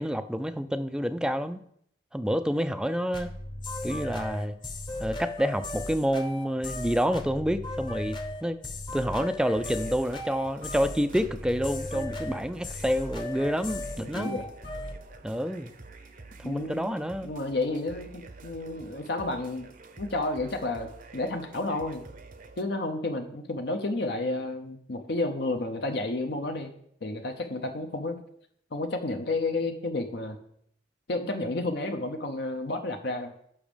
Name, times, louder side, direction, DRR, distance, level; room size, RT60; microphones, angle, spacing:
voice 1, 0.0-1.6 2.1-3.3 3.8-4.6 5.0-8.6 8.9-14.4 15.2-15.7 16.4-17.3, equal, 5° right, 11 dB, 0.3 m, -28 dB
sound 1, 3.1-15.0, left 1 dB, 25° left, 0.8 m, -36 dB
sound 2, 9.5-22.6, right 3 dB, 45° right, 0.7 m, -49 dB
voice 2, 14.0-14.5 16.4-16.9 17.2-19.7 20.0-22.0 22.6-26.7 27.0-28.2 28.7-30.4 31.1-33.3, left 2 dB, 65° left, 5 dB, 0.7 m, -31 dB
7.1 x 6.0 x 5.1 m, 0.70 s
head